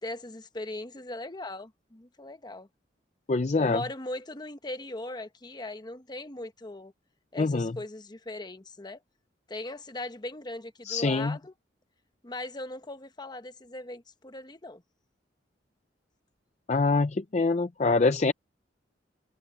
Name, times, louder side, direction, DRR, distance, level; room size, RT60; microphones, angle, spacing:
voice 1, 0.0-2.7 3.5-6.9 7.3-9.0 9.5-11.5 12.2-14.8, left 2 dB, 25° left, 1.0 m, -39 dB
voice 2, 3.3-3.8 7.4-7.7 10.9-11.4 16.7-18.3, left 3 dB, 40° left, 0.5 m, -25 dB
head